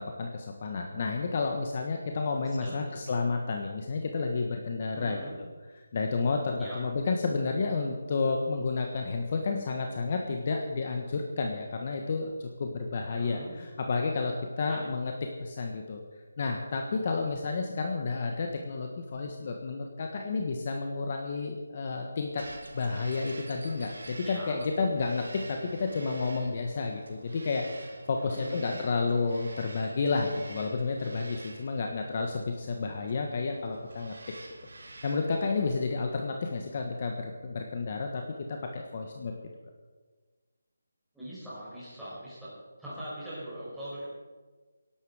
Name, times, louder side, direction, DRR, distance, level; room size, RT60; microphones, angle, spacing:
voice 1, 0.0-5.2 5.9-15.1 15.4-16.0 16.4-22.4 22.7-34.1 34.8-38.2 38.5-39.3, left 4 dB, 35° left, 3 dB, 1.4 m, -31 dB
voice 2, 2.6-3.0 4.9-5.3 6.6-6.8 13.1-13.5 14.7-14.8 24.2-24.6 28.2-28.8 41.1-44.0, right 1 dB, ahead, -12 dB, 5.4 m, -42 dB
Bird vocalization bird call bird song, 22.4-36.1, right 2 dB, 70° right, 2.7 m, -48 dB
18.0 x 11.5 x 5.0 m, 1.4 s
figure-of-eight pair, 170°, 0 cm